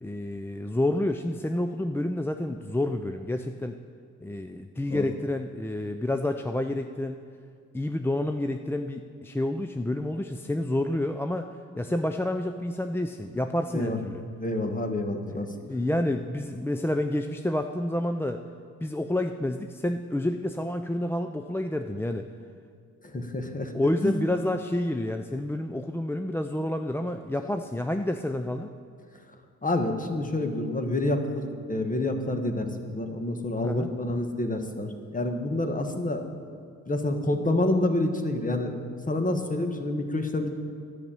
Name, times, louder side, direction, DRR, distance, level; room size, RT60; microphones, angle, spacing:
voice 1, 0.0-3.8 4.2-7.2 7.7-11.5 11.8-14.2 15.3-18.4 18.8-22.3 23.7-28.7 33.6-33.9, left 1 dB, 5° left, 6 dB, 0.4 m, -29 dB
voice 2, 14.4-15.5 23.0-23.7 24.0-24.2 29.6-38.8 39.1-40.5, left 1 dB, 25° left, 6 dB, 1.4 m, -28 dB
11.0 x 6.6 x 8.9 m, 2.3 s
cardioid pair, 65°, 32 cm